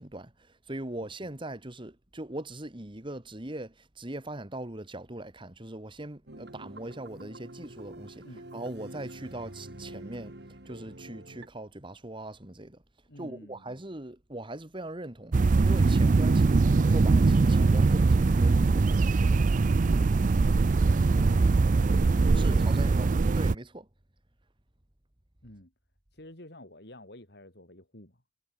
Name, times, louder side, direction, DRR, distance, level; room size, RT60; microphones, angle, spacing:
voice 1, 0.0-8.2 8.5-12.8 13.2-19.3 22.3-23.9, right 1 dB, 30° right, 1.9 m, -41 dB
sound 1, 6.3-11.5, right 1 dB, 65° right, 2.5 m, -46 dB
voice 2, 13.1-13.6 19.8-20.4 20.9-21.7 22.3-22.9 25.4-25.7 26.1-28.2, left 1 dB, 65° left, 5.3 m, -49 dB
sound 2, 15.3-23.6, right 3 dB, 45° right, 0.4 m, -22 dB
head